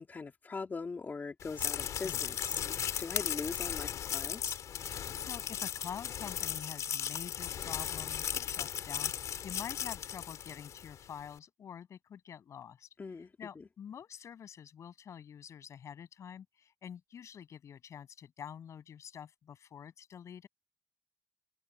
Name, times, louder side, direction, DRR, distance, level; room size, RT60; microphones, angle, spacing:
voice 1, 0.0-4.6 13.0-13.6, left 4 dB, 35° left, 2.8 m, -42 dB
sound 1, 1.4-10.9, left 9 dB, 90° left, 3.9 m, -36 dB
voice 2, 4.8-20.5, left 8 dB, 70° left, 7.1 m, -47 dB
cardioid pair, 110°, 5 cm